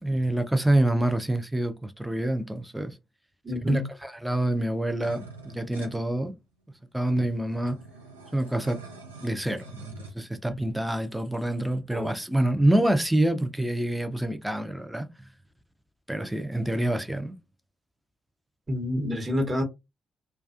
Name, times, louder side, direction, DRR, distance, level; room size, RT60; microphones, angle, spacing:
voice 1, 0.0-3.0 3.7-6.3 6.9-7.8 8.3-8.8 9.2-15.3 16.1-17.3, right 1 dB, 5° right, 0.5 m, -26 dB
voice 2, 3.4-3.8 10.5-10.6 11.9-12.1 18.7-19.6, left 1 dB, 30° right, 0.9 m, -28 dB
sound 1, 5.0-6.0 6.7-6.8 7.0-10.1, right 3 dB, 85° right, 0.4 m, -45 dB
2.3 x 2.3 x 2.5 m
figure-of-eight pair, 40°, 0 cm